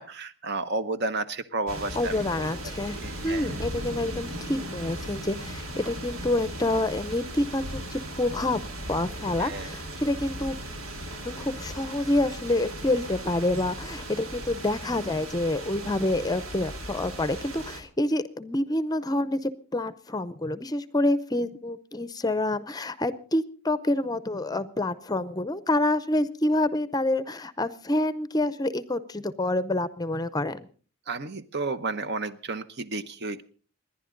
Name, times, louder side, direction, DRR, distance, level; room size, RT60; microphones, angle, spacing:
voice 1, 0.0-2.5 3.0-3.6 9.4-9.7 31.1-33.4, right 3 dB, 55° right, 11 dB, 1.0 m, -32 dB
sound 1, 1.7-17.8, right 1 dB, 90° right, 2.6 m, -37 dB
voice 2, 1.9-3.0 3.2-8.6 8.9-10.6 11.2-30.7, left 1 dB, 20° left, 15 dB, 0.6 m, -27 dB
27.5 x 11.0 x 3.9 m, 0.40 s
head